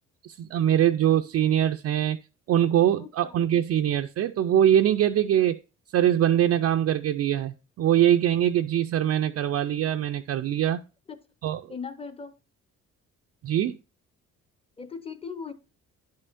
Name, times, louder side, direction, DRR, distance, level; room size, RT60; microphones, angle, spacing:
voice 1, 0.2-2.2 2.5-5.6 5.9-10.8 11.4-11.7 13.4-13.8, right 10 dB, 55° right, 0.4 m, -23 dB
voice 2, 3.0-3.3 11.1-11.2 11.7-12.3 14.8-15.5, left 5 dB, 20° left, 0.8 m, -38 dB
10.5 x 5.6 x 2.5 m
cardioid pair, 90°, 30 cm